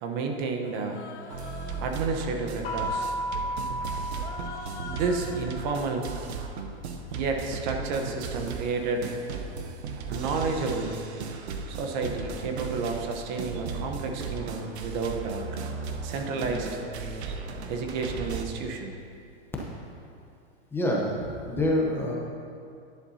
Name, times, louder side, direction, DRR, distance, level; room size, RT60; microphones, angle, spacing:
voice 1, 0.0-1.0 1.8-3.1 4.9-6.1 7.1-9.1 10.1-11.0 11.7-15.6 16.0-16.8 17.7-18.9, right 4 dB, 45° right, 3 dB, 1.0 m, -31 dB
Human voice, 0.6-2.0 2.6-3.3 4.1-5.8, left 6 dB, 85° left, 0.9 m, -44 dB
sound 1, 1.3-18.4, right 4 dB, 70° right, 1.0 m, -36 dB
sound 2, 2.6-5.4, right 1 dB, 55° left, 1.9 m, -33 dB
voice 2, 20.7-22.1, left 1 dB, 5° left, -3 dB, 0.9 m, -26 dB
11.0 x 10.5 x 2.8 m, 2.5 s
hypercardioid pair, 140°, 34 cm